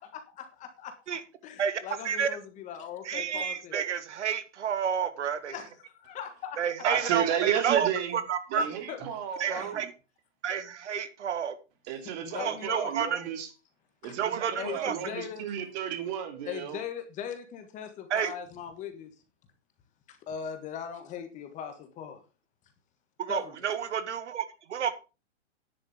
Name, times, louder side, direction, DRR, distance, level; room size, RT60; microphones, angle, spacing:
voice 1, 0.4-0.9 1.4-3.8 5.5-6.6 8.5-9.0 9.5-9.8 12.2-12.9 14.0-14.1 14.6-15.7 16.4-19.1 20.1-22.2 23.3-23.8, left 8 dB, 20° left, 1.6 m, -40 dB
voice 2, 1.6-2.3 3.0-5.5 6.6-8.6 9.4-9.9 10.4-11.5 12.4-13.2 14.2-14.9 18.1-18.3 23.2-24.9, right 8 dB, 75° right, 1.7 m, -30 dB
voice 3, 6.8-8.2 8.5-9.8 11.9-13.5 14.0-16.8, right 9 dB, 35° right, 2.8 m, -32 dB
10.0 x 7.8 x 5.1 m
hypercardioid pair, 150°, 35 cm